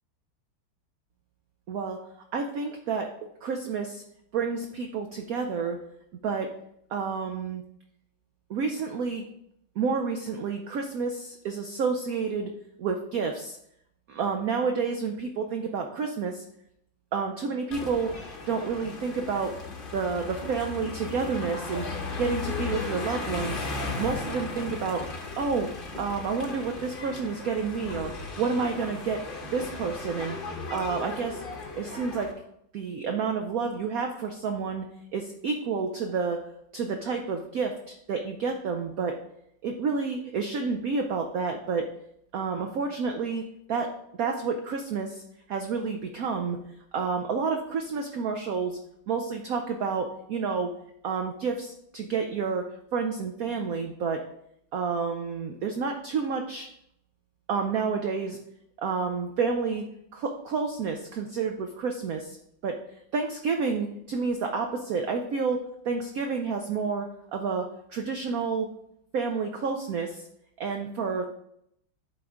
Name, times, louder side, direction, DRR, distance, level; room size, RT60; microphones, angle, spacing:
voice 1, 1.7-2.0 2.3-3.1 3.4-4.0 4.3-5.8 6.2-6.5 6.9-7.6 8.5-9.3 9.8-12.5 12.8-13.6 14.1-16.4 17.1-18.1 18.5-19.6 19.9-21.9 22.2-23.6 24.0-25.1 25.4-25.7 26.0-29.2 29.5-30.4 30.7-31.4 31.7-32.3 32.7-34.9 35.1-36.4 36.7-39.2 39.6-41.9 42.3-43.4 43.7-43.9 44.2-45.2 45.5-46.6 46.9-48.8 49.1-50.7 51.0-54.3 54.7-56.7 57.5-58.4 58.8-59.8 60.1-62.4 62.6-62.8 63.1-65.6 65.8-68.7 69.1-70.3 70.6-71.3, right 5 dB, 75° right, 4 dB, 0.8 m, -29 dB
sound 1, 17.7-32.3, left 3 dB, 40° left, 0.8 m, -36 dB
11.0 x 4.1 x 3.7 m, 0.75 s
omnidirectional pair, 2.2 m